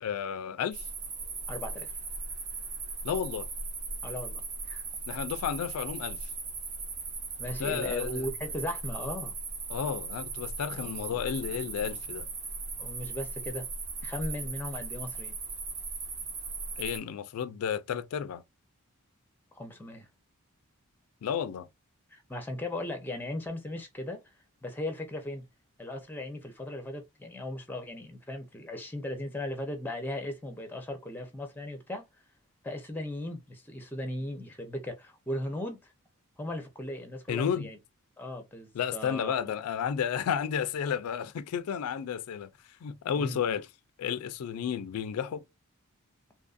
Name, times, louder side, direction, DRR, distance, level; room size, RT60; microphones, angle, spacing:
voice 1, 0.0-0.8 3.0-3.5 5.1-6.2 7.6-8.3 9.7-12.3 16.8-18.4 21.2-21.7 37.3-37.7 38.7-42.5 42.8-43.7 44.0-45.4, left 8 dB, 85° left, 0.3 m, -32 dB
sound 1, 0.7-17.0, right 4 dB, 35° right, 0.7 m, -38 dB
voice 2, 1.5-1.9 4.0-4.8 7.4-9.3 10.7-11.3 11.6-12.0 12.8-13.7 14.0-15.3 19.5-20.1 22.1-24.3 24.6-25.5 25.8-32.0 32.6-35.8 36.4-37.8 38.2-39.5 43.2-43.4, left 1 dB, 10° left, 0.5 m, -37 dB
2.7 x 2.5 x 2.3 m
head